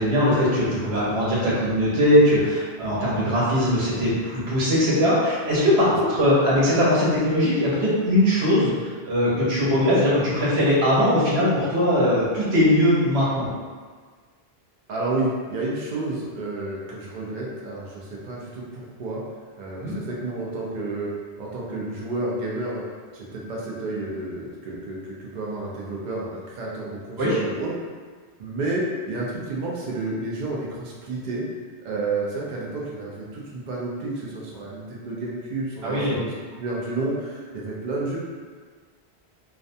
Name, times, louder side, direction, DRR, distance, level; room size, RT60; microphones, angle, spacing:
voice 1, 0.0-13.5 19.8-19.9 27.2-27.4 35.8-36.2, equal, 80° right, -8 dB, 1.1 m, -20 dB
voice 2, 14.9-19.2 19.6-21.1 21.4-22.8 23.1-27.7 28.4-31.4 31.8-36.2 36.6-38.2, right 2 dB, 55° right, -4 dB, 0.5 m, -30 dB
2.3 x 2.2 x 2.6 m, 1.5 s
omnidirectional pair, 1.1 m